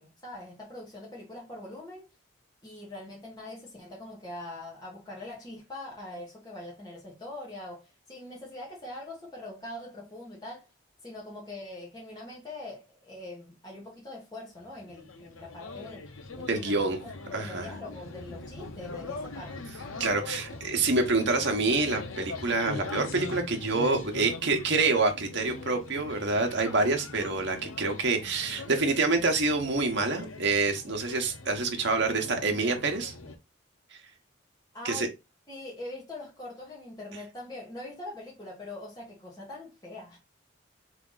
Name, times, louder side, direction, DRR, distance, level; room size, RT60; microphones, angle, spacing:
voice 1, 0.0-2.1 2.6-10.7 11.0-16.1 16.3-16.9 17.3-19.6 34.7-35.1 35.5-40.2, left 2 dB, 20° left, 1.6 m, -43 dB
sound 1, 14.6-33.4, left 3 dB, 80° left, 0.8 m, -42 dB
voice 2, 16.5-17.0 17.3-17.7 20.0-33.1 34.8-35.1, right 3 dB, 55° right, 1.0 m, -27 dB
3.6 x 3.4 x 3.9 m
head